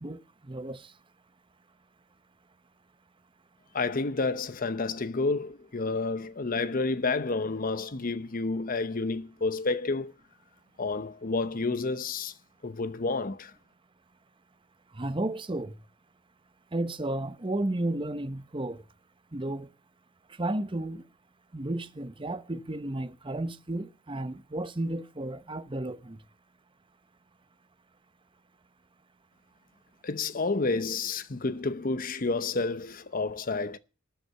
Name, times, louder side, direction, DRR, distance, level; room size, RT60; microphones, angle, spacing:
voice 1, 0.0-0.9 14.9-15.8 16.7-18.8 19.3-19.7 20.4-21.0 21.5-26.2, right 1 dB, 25° right, 0.8 m, -33 dB
voice 2, 3.7-10.1 10.8-12.3 12.6-13.5 30.0-33.8, left 3 dB, 40° left, 0.7 m, -30 dB
13.0 x 8.0 x 6.9 m
head